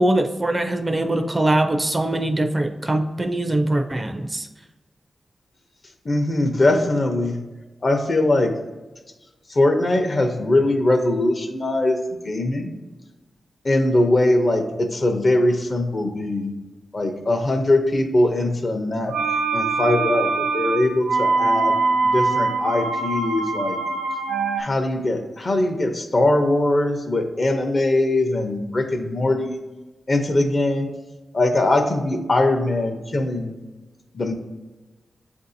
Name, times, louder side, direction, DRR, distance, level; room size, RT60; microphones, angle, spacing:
voice 1, 0.0-4.5, right 1 dB, 25° right, 5 dB, 0.4 m, -22 dB
voice 2, 6.0-7.4 7.8-8.5 9.5-12.7 13.6-16.5 16.9-19.1 19.5-21.8 22.0-23.8 24.6-29.6 30.1-30.9 31.3-33.6 34.1-34.3, left 2 dB, 45° left, 5 dB, 0.7 m, -21 dB
sound 1, 19.1-24.6, right 4 dB, 85° right, 0.4 m, -23 dB
7.6 x 2.6 x 2.7 m, 1.2 s
cardioid pair, 70°, 0 cm